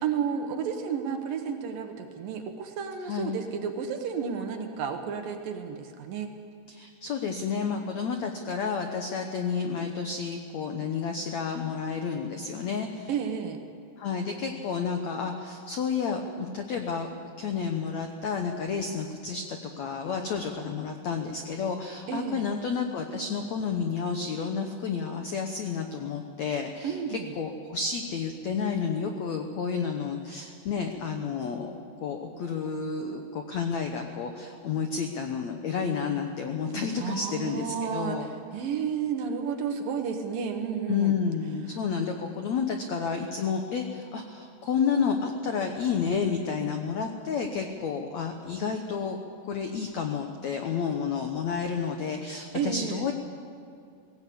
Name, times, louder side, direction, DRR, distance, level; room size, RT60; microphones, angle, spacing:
voice 1, 0.0-6.3 13.1-13.6 22.1-22.4 26.8-27.3 37.0-41.1 52.5-53.0, right 7 dB, 65° right, 5 dB, 2.5 m, -32 dB
voice 2, 3.0-3.4 6.7-13.1 14.0-17.1 17.4-38.3 40.9-49.2 49.5-53.1, left 6 dB, 85° left, 4 dB, 1.5 m, -30 dB
19.0 x 17.0 x 8.5 m, 2.4 s
omnidirectional pair, 4.9 m